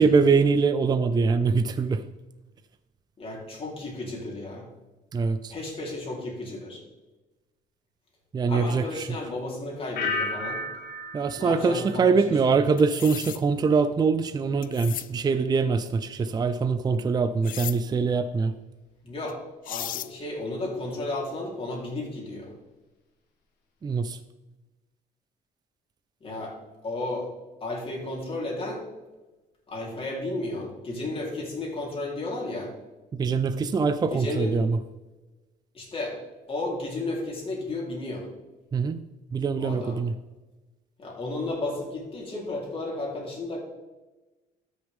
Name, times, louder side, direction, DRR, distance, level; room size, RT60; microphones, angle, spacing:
voice 1, 0.0-2.0 5.1-5.5 8.3-9.2 11.1-18.5 23.8-24.2 33.1-34.8 38.7-39.0 39.3-40.1, right 4 dB, 25° right, 11 dB, 0.5 m, -23 dB
voice 2, 3.2-4.7 5.5-6.8 8.5-10.6 11.4-12.2 12.5-12.6 19.0-19.4 19.7-22.5 26.2-26.5 26.8-27.3 27.6-28.8 29.7-32.7 34.1-34.5 35.7-36.1 36.5-38.3 39.6-40.0 41.0-43.6, left 2 dB, 35° left, -2 dB, 3.7 m, -33 dB
sound 1, 10.0-12.8 13.1-13.6, left 2 dB, 75° left, 2.0 m, -34 dB
sound 2, 12.8-13.4 14.6-15.1 17.4-17.8 19.3-19.4 19.6-20.1, left 13 dB, 55° left, 0.4 m, -35 dB
13.0 x 6.4 x 3.6 m, 1.1 s
cardioid pair, 110°, 17 cm